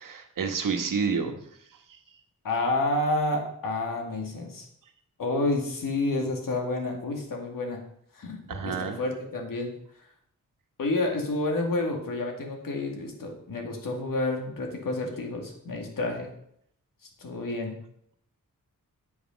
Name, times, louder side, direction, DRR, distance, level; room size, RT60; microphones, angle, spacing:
voice 1, 0.0-1.4 1.9-2.0 8.5-9.0, right 5 dB, 70° right, 5 dB, 1.4 m, -29 dB
voice 2, 2.4-4.7 5.2-7.8 8.1-9.7 10.8-16.3 17.2-17.8, left 2 dB, 75° left, 2 dB, 2.2 m, -29 dB
8.6 x 8.3 x 5.2 m, 0.71 s
wide cardioid pair, 120°, 33 cm